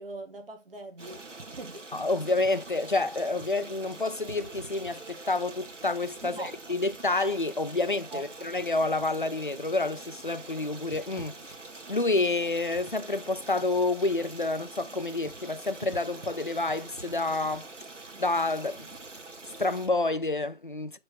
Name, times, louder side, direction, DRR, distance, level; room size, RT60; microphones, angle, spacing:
voice 1, 0.0-1.9 6.2-6.5 8.1-8.3, right 2 dB, 50° right, 2.0 m, -41 dB
Stream, 1.0-19.9, right 3 dB, 70° right, 2.1 m, -45 dB
voice 2, 1.9-11.4 11.9-17.7 18.2-18.9 19.6-21.0, left 2 dB, 45° left, 0.4 m, -29 dB
7.5 x 3.5 x 3.8 m
figure-of-eight pair, 165°, 37 cm